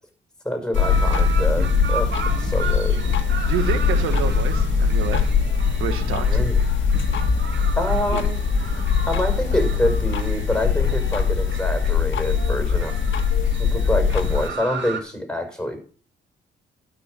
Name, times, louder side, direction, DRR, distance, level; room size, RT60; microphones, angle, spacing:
voice 1, 0.4-3.0 6.3-6.6 7.8-8.4 9.1-12.9 13.6-15.8, left 1 dB, 5° left, 5 dB, 6.1 m, -26 dB
sound 1, 0.7-14.5, left 6 dB, 65° left, 1.8 m, -21 dB
sound 2, 0.7-15.0, right 5 dB, 60° right, 2.3 m, -34 dB
voice 2, 3.5-5.3 5.8-6.4 8.1-8.2, right 9 dB, 85° right, 9 dB, 1.5 m, -28 dB
12.0 x 5.9 x 8.3 m, 0.42 s
supercardioid pair, 55°, 21 cm